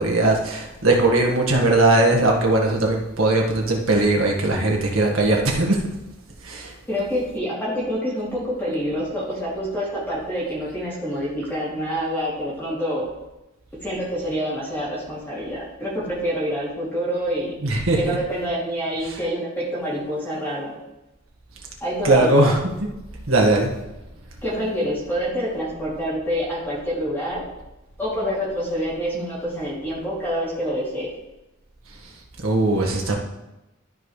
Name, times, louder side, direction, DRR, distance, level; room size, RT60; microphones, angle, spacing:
voice 1, 0.0-5.8 6.4-6.7 17.6-18.2 19.0-19.1 22.0-22.9 23.3-23.7 32.4-33.1, right 2 dB, 80° right, 0 dB, 1.7 m, -19 dB
voice 2, 6.9-13.0 13.8-20.7 21.8-22.6 24.4-27.5 28.0-31.1, equal, 10° left, -8 dB, 2.8 m, -27 dB
13.0 x 5.3 x 3.3 m, 0.95 s
head